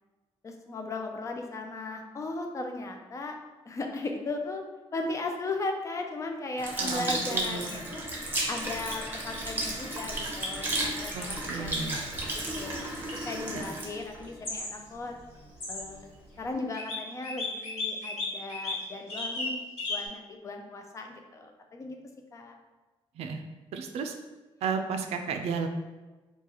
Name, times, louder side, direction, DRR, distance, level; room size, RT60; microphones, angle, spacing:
voice 1, 0.4-3.4 3.7-4.6 4.9-8.0 8.5-11.7 12.1-15.1 15.7-16.1 16.4-22.0 22.3-22.5, left 2 dB, 30° left, 3 dB, 0.4 m, -37 dB
Sink (filling or washing) / Liquid, 6.6-15.2 15.8-15.9, right 1 dB, 20° right, 0.7 m, -33 dB
voice 2, 6.8-7.7 11.1-12.0 13.5-13.6 23.1-23.4 23.7-24.1 24.6-25.7, right 5 dB, 85° right, 5 dB, 0.4 m, -33 dB
sound 1, 13.1-13.3 14.4-14.7 15.6-15.8 16.7-17.0 17.2-18.7 19.1-19.5 19.8-20.1, left 3 dB, 75° left, 1.3 m, -33 dB
3.8 x 2.3 x 2.9 m, 1.2 s
cardioid pair, 135°, 10 cm